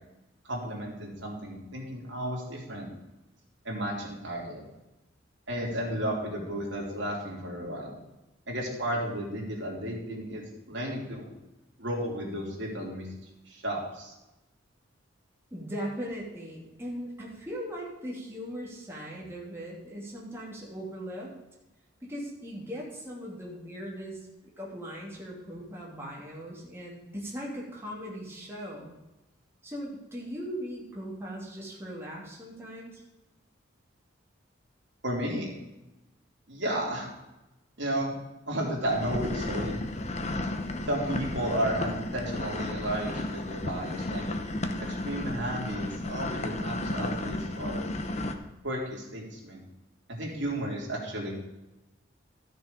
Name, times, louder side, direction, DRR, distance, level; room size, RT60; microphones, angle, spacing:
voice 1, 0.5-2.9 3.6-4.6 5.5-8.0 8.5-11.3 11.8-13.1 13.5-14.1 35.0-35.5 36.5-37.1 37.8-38.2 38.4-39.7 40.9-44.2 44.8-47.8 48.6-49.6 50.1-51.3, right 1 dB, 60° right, -3 dB, 3.2 m, -33 dB
voice 2, 15.5-21.3 22.1-24.2 24.6-28.9 29.6-33.0, equal, 10° right, -4 dB, 2.7 m, -39 dB
sound 1, 38.8-48.3, left 1 dB, 35° left, 0.8 m, -33 dB
13.0 x 6.6 x 5.2 m, 0.99 s
head